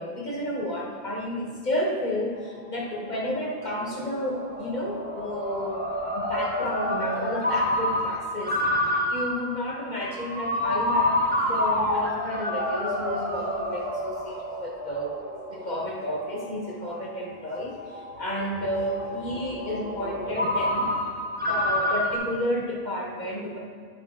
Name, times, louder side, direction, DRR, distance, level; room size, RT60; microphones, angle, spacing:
voice 1, 0.0-5.8 6.1-11.2 11.5-15.1 15.5-20.9 21.4-23.6, left 1 dB, 40° left, -2 dB, 1.3 m, -31 dB
Ringtone, 2.4-22.2, left 1 dB, 10° right, 1.1 m, -29 dB
10.5 x 6.5 x 3.7 m, 2.2 s
omnidirectional pair, 1.2 m